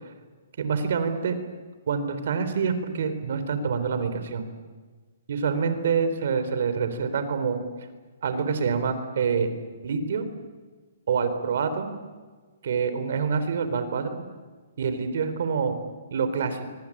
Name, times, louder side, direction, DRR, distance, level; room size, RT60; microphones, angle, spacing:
voice 1, 0.6-1.4 1.9-4.4 5.3-7.6 8.2-9.5 9.8-10.3 11.1-11.9 12.6-14.2 14.8-15.8 16.1-16.7, right 5 dB, 60° right, 10 dB, 3.9 m, -26 dB
24.5 x 23.5 x 8.8 m, 1.4 s
hypercardioid pair, 165°, 0 cm